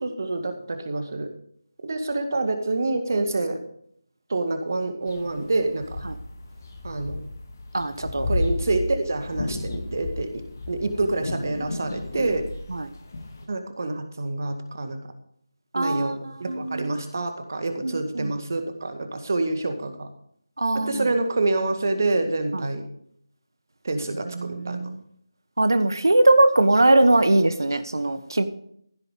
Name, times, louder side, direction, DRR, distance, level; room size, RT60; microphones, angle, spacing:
voice 1, 0.0-1.3 1.8-3.6 4.3-6.0 6.8-7.2 8.3-10.4 10.7-12.5 13.5-15.0 15.7-20.1 20.9-22.9 23.8-24.9, right 2 dB, 45° right, 7 dB, 2.0 m, -27 dB
sound 1, 5.1-13.4, left 2 dB, 40° left, 2.2 m, -33 dB
voice 2, 7.7-8.3 12.7-12.9 15.7-16.9 17.8-18.3 20.6-21.0 22.5-22.6 24.3-25.0 25.6-28.4, right 2 dB, 65° right, 11 dB, 1.1 m, -21 dB
15.5 x 7.9 x 5.1 m, 0.68 s
figure-of-eight pair, 160°, 2 cm